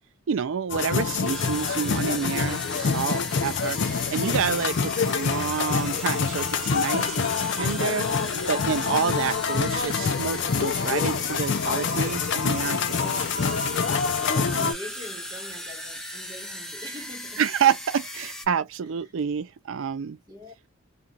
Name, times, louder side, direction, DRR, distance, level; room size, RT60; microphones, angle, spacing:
voice 1, 0.3-3.8 4.1-8.0 8.5-13.6 14.4-14.7 17.4-20.2, right 7 dB, 65° right, 0.4 m, -28 dB
sound 1, 0.7-14.7, left 5 dB, 55° left, 0.4 m, -26 dB
sound 2, 1.2-18.4, equal, 5° left, 0.5 m, -38 dB
voice 2, 14.1-17.5 18.8-19.2 20.0-20.5, left 1 dB, 20° right, 1.0 m, -44 dB
2.4 x 2.4 x 2.7 m
head